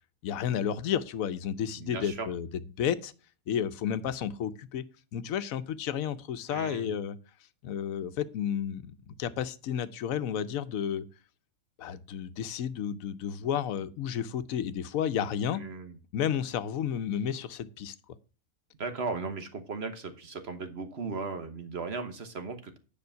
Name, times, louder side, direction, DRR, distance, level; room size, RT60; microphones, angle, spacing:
voice 1, 0.2-2.5 2.8-3.1 3.5-4.8 5.1-7.2 7.6-11.0 11.8-15.6 16.1-18.0, left 8 dB, 85° left, 1.1 m, -32 dB
voice 2, 1.8-2.3 6.5-7.0 15.6-16.0 18.8-22.8, right 4 dB, 55° right, 1.3 m, -37 dB
9.5 x 5.2 x 5.6 m
omnidirectional pair, 1.4 m